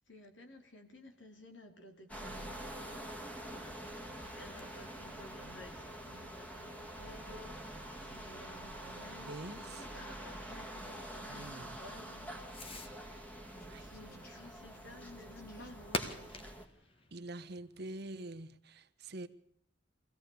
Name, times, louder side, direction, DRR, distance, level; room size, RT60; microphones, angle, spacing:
voice 1, 0.1-17.0, left 1 dB, 90° left, 3.3 m, -55 dB
sound 1, 2.1-16.7, right 1 dB, 10° left, 2.0 m, -46 dB
Fireworks, 3.9-18.5, left 2 dB, 30° left, 1.5 m, -50 dB
voice 2, 9.1-9.9 11.3-11.8 13.7-13.9 17.1-19.3, right 2 dB, 60° right, 1.2 m, -46 dB
sound 2, 9.3-11.5 11.7-11.8 13.6-16.0, left 2 dB, 55° left, 4.1 m, -60 dB
24.0 x 17.0 x 7.1 m
head